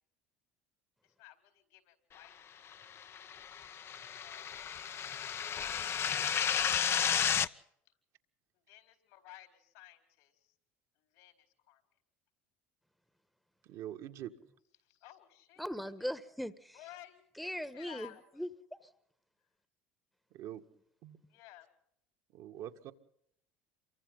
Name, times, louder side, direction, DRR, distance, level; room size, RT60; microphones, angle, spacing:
voice 1, 1.0-2.6 3.9-4.8 7.8-7.9 8.7-10.5 11.1-11.8 14.8-15.6 16.0-16.1 16.7-18.4 21.3-21.7, left 15 dB, 75° left, 4.5 m, -56 dB
sound 1, 3.0-7.5, left 8 dB, 40° left, 0.8 m, -32 dB
voice 2, 13.6-14.3 20.3-20.6 21.0-21.2 22.3-22.9, right 12 dB, 60° right, 1.8 m, -44 dB
voice 3, 15.6-16.8 17.4-18.1 18.4-18.8, equal, ahead, 1.3 m, -39 dB
27.5 x 24.0 x 3.9 m
hypercardioid pair, 75°, 6 cm